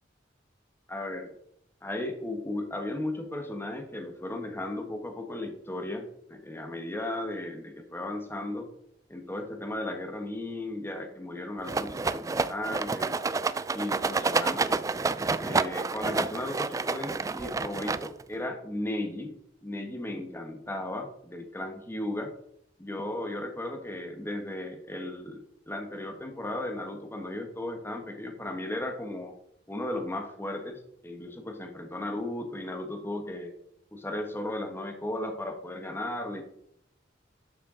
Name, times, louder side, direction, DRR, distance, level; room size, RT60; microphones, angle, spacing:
voice 1, 0.9-1.3 1.8-8.7 9.1-13.2 13.7-14.8 15.4-19.3 19.6-22.3 22.8-29.3 29.7-33.5 33.9-36.4, left 1 dB, 15° left, 4 dB, 1.2 m, -35 dB
Rattle, 11.7-18.3, right 4 dB, 20° right, 0.3 m, -29 dB
11.5 x 6.6 x 3.8 m, 0.74 s
head